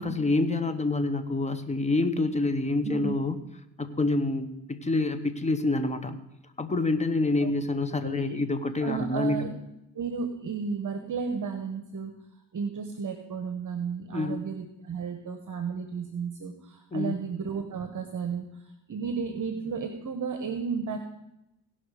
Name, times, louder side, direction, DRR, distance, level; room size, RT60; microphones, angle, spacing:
voice 1, 0.0-3.4 3.8-6.2 6.6-9.4 14.1-14.4 16.9-17.2, left 2 dB, 15° left, 9 dB, 1.0 m, -27 dB
voice 2, 8.0-8.4 8.8-9.5 9.9-12.1 12.5-18.5 18.9-21.0, right 5 dB, 45° right, 7 dB, 1.1 m, -33 dB
17.5 x 5.8 x 4.9 m, 0.90 s
cardioid pair, 85°, 44 cm